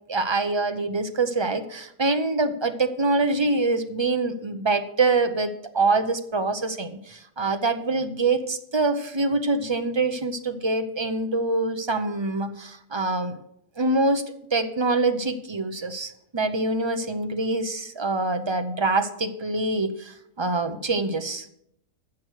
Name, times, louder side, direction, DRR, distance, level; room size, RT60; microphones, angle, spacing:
voice 1, 0.1-13.4 13.8-14.2 14.5-21.5, right 3 dB, 30° right, 8 dB, 0.5 m, -25 dB
15.5 x 6.4 x 6.4 m, 0.73 s
omnidirectional pair, 1.7 m